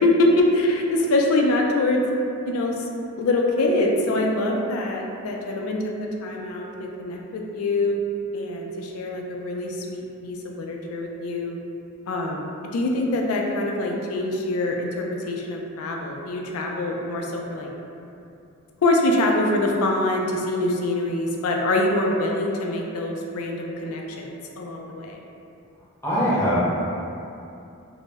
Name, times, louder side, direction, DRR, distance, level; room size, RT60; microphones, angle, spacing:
voice 1, 0.0-2.0 2.5-2.8 3.2-8.0 8.3-11.6 12.1-12.5 12.7-17.7 18.8-25.2, left 2 dB, 90° left, 0 dB, 0.3 m, -24 dB
voice 2, 26.0-26.8, equal, 10° left, -11 dB, 0.6 m, -21 dB
2.0 x 2.0 x 3.3 m, 2.7 s
head